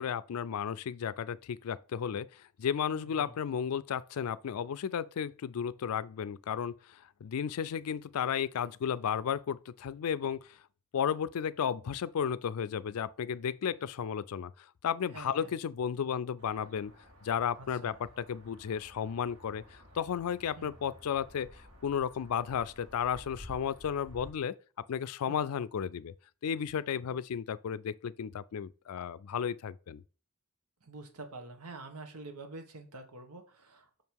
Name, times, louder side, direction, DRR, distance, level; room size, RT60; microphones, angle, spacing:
voice 1, 0.0-10.6 10.9-16.9 17.2-24.6 24.9-26.1 26.4-30.0, left 8 dB, 75° left, 0.4 m, -34 dB
voice 2, 2.9-3.3 15.1-15.5 17.6-18.0 20.6-20.7 25.3-25.4 27.0-27.2 30.8-33.9, right 2 dB, 90° right, 1.4 m, -47 dB
sound 1, 16.4-24.3, equal, 65° right, 1.9 m, -53 dB
6.0 x 5.4 x 4.7 m
head